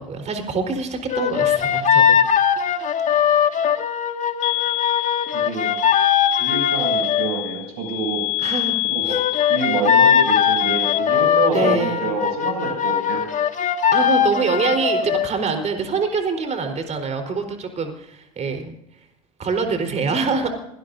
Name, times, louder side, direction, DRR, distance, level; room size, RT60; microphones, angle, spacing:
voice 1, 0.0-2.2 8.4-8.8 9.0-9.2 11.5-12.0 13.9-19.1 19.4-20.5, right 4 dB, 35° right, 6 dB, 4.3 m, -25 dB
sound 1, 1.1-7.3 9.1-15.3, left 8 dB, 40° left, 1.9 m, -20 dB
sound 2, 4.4-11.0, left 22 dB, 65° left, 0.7 m, -26 dB
voice 2, 5.3-5.7 6.4-8.2 8.9-9.2 9.5-13.2 19.9-20.0, right 4 dB, 60° right, 2 dB, 7.7 m, -27 dB
25.0 x 17.5 x 2.7 m, 0.78 s
hypercardioid pair, 65°, 19 cm